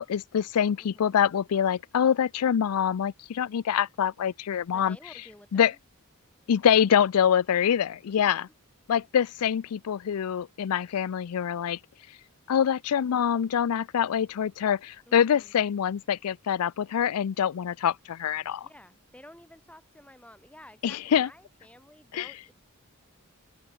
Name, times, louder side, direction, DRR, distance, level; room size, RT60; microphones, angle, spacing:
voice 1, 0.0-5.0 5.5-5.7 6.5-8.5 8.9-11.8 12.5-18.7 20.8-21.3 22.1-22.3, left 8 dB, 75° left, 0.4 m, -25 dB
voice 2, 0.8-1.2 4.7-5.8 8.0-8.5 15.1-15.5 18.6-22.5, left 1 dB, 5° left, 6.3 m, -52 dB
open air
head